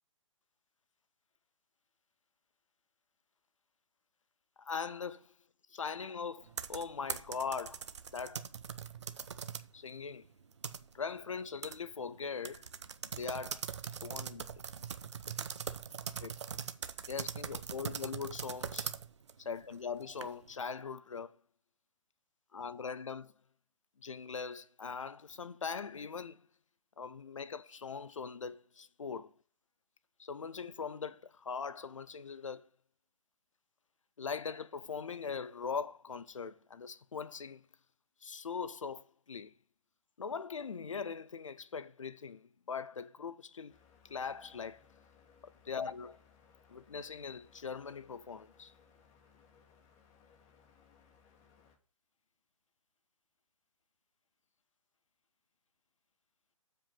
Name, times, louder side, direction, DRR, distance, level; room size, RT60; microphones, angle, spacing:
voice 1, 4.6-5.3 5.7-7.9 8.1-8.4 9.7-10.3 10.9-12.7 13.2-13.7 14.0-14.4 16.2-16.3 17.1-18.9 19.4-21.4 22.5-23.3 24.0-26.4 27.0-29.3 30.2-32.7 34.2-37.6 38.2-39.5 40.2-43.8 44.1-44.8 45.4-46.2 46.7-48.7, left 5 dB, 65° left, 0.6 m, -41 dB
sound 1, 6.4-9.7 10.1-11.2 11.6-11.8 12.0-12.1 12.4-20.5, right 7 dB, 55° right, 0.7 m, -41 dB
sound 2, 43.7-51.8, left 6 dB, 20° left, 1.3 m, -65 dB
7.2 x 5.3 x 5.8 m
figure-of-eight pair, 130°, 17 cm